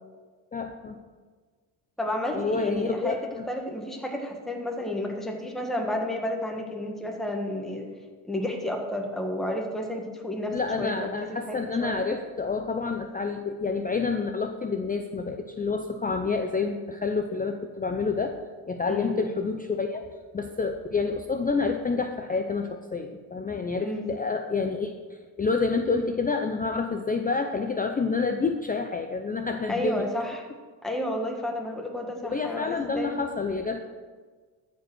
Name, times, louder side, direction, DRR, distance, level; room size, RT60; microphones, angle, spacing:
voice 1, 0.5-1.0 2.3-3.1 10.5-18.4 18.7-20.1 20.3-24.9 25.4-30.0 32.2-33.9, left 4 dB, 20° left, 5 dB, 0.6 m, -28 dB
voice 2, 2.0-3.2 3.5-7.9 8.2-12.1 18.9-19.2 23.8-24.1 29.7-30.5 30.8-33.2, left 1 dB, ahead, 1 dB, 1.6 m, -31 dB
13.5 x 5.2 x 6.2 m, 1.5 s
cardioid pair, 100°, 48 cm